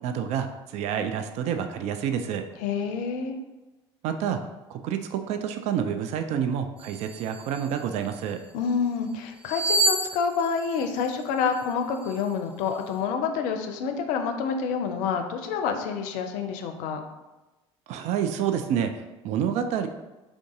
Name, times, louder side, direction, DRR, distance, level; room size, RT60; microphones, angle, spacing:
voice 1, 0.0-2.5 4.0-4.4 4.7-8.4 17.9-19.9, right 8 dB, 50° right, 7 dB, 0.4 m, -28 dB
voice 2, 2.6-3.4 8.5-17.0, left 6 dB, 60° left, 6 dB, 0.5 m, -28 dB
sound 1, 6.8-8.3 9.4-11.6 12.0-12.2, right 2 dB, 10° right, 1.3 m, -29 dB
3.6 x 2.6 x 3.6 m, 1.1 s
hypercardioid pair, 65°, 15 cm